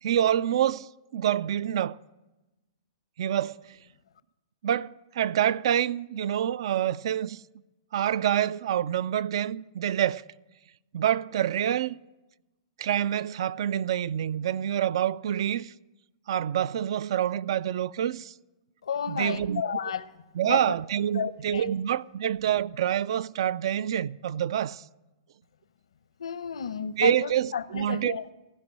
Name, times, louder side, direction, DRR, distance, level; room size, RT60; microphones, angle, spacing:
voice 1, 0.0-2.0 3.2-3.8 4.6-7.4 7.9-10.2 10.9-12.0 12.8-15.7 16.3-18.3 19.1-19.6 20.4-24.8 27.0-28.2, right 10 dB, 65° right, 0.3 m, -27 dB
voice 2, 18.8-20.0 20.4-20.7 21.1-21.7 26.2-28.3, left 7 dB, 90° left, 0.7 m, -32 dB
15.0 x 5.3 x 9.5 m
hypercardioid pair, 145°, 3 cm